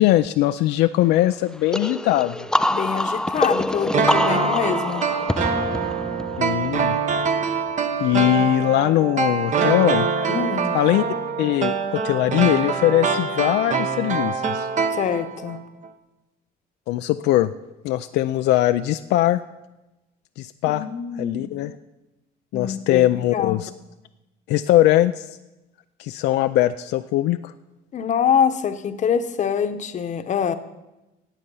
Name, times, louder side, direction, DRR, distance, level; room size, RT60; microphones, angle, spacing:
voice 1, 0.0-2.5 6.4-7.0 8.0-10.1 10.7-11.0 11.4-14.7 16.9-17.5 17.8-19.4 20.4-20.8 21.2-21.8 22.5-23.7 24.5-25.3 26.0-27.5, left 15 dB, 80° left, 9 dB, 0.4 m, -20 dB
sound 1, 1.7-7.3, left 1 dB, 5° left, 0.3 m, -25 dB
voice 2, 2.7-5.0 10.3-10.7 14.9-15.6 20.6-21.5 22.5-23.6 27.9-30.5, left 7 dB, 45° left, 10 dB, 1.0 m, -25 dB
sound 2, 3.9-15.6 15.8-15.9, right 5 dB, 45° right, 1.1 m, -24 dB
17.5 x 7.9 x 5.5 m, 1.0 s
cardioid pair, 110°, 17 cm